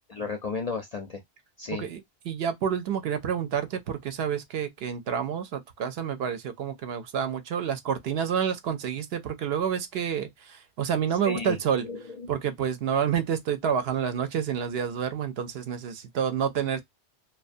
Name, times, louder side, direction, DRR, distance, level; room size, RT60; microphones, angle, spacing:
voice 1, 0.1-1.2 1.6-1.9 11.2-11.6 11.8-12.3, left 4 dB, 50° left, 0.5 m, -33 dB
voice 2, 1.7-11.9 12.3-16.8, right 8 dB, 65° right, 0.8 m, -29 dB
2.4 x 2.2 x 2.4 m
omnidirectional pair, 1.2 m